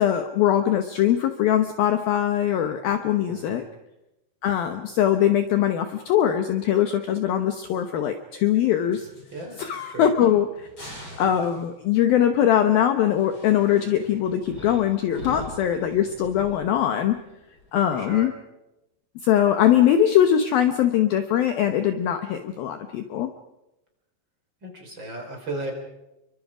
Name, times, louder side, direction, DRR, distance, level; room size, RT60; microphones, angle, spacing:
voice 1, 0.0-3.6 4.4-9.1 9.6-10.7 11.2-17.2 17.7-18.3 19.2-23.3, left 10 dB, 70° left, 7 dB, 2.4 m, -21 dB
voice 2, 3.3-3.7 9.3-9.6 9.9-10.1 17.9-18.3 24.6-25.7, right 2 dB, 25° right, 2 dB, 4.3 m, -35 dB
sound 1, 8.9-9.8 10.1-10.2 10.6-11.9 13.1-18.1, left 2 dB, 25° left, 7.9 m, -42 dB
29.0 x 24.0 x 5.0 m, 0.95 s
omnidirectional pair, 5.3 m